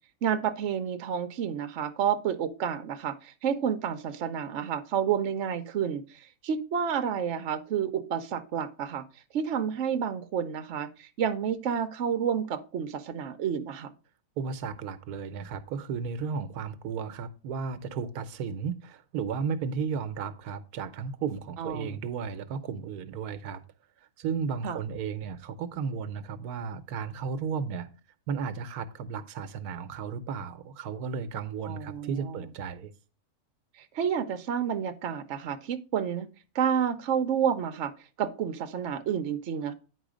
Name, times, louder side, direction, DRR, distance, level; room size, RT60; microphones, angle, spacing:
voice 1, 0.2-9.0 9.3-13.9 21.6-22.0 24.6-24.8 31.6-32.5 33.9-36.3 36.5-37.9 38.2-39.7, right 8 dB, 60° right, 1.0 m, -30 dB
voice 2, 14.4-23.6 24.2-27.9 28.3-32.9, right 6 dB, 90° right, 1.2 m, -34 dB
9.3 x 4.8 x 4.9 m
omnidirectional pair, 1.6 m